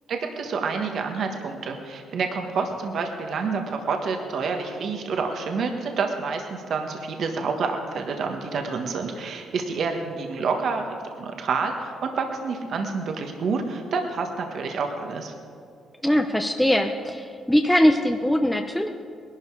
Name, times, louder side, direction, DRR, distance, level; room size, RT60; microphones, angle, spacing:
voice 1, 0.1-10.8 11.2-15.3, right 4 dB, 65° right, 3 dB, 1.4 m, -28 dB
voice 2, 16.0-18.9, equal, 5° left, 4 dB, 0.7 m, -21 dB
19.5 x 12.0 x 4.8 m, 2.3 s
cardioid pair, 90°, 0 cm